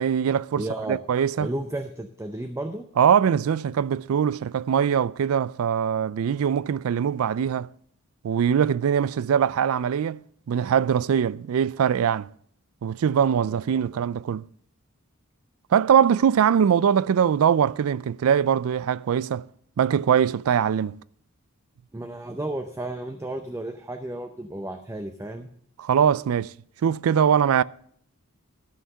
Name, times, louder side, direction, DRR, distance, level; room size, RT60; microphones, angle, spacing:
voice 1, 0.0-1.5 3.0-7.7 8.2-12.3 12.8-14.5 15.7-19.5 19.8-21.0 25.8-26.5 26.8-27.6, right 8 dB, 70° right, 0.3 m, -22 dB
voice 2, 0.6-1.0 1.4-2.9 13.5-14.0 21.9-25.5, right 1 dB, 15° right, 0.6 m, -33 dB
12.5 x 5.7 x 6.7 m
head